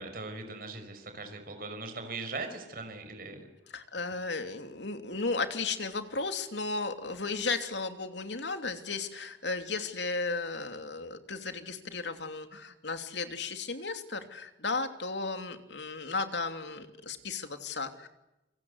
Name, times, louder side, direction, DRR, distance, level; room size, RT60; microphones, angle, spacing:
voice 1, 0.0-3.5, right 3 dB, 50° right, 6 dB, 5.3 m, -40 dB
voice 2, 3.7-18.1, left 3 dB, 70° left, 7 dB, 3.0 m, -35 dB
29.0 x 24.5 x 8.2 m, 0.94 s
head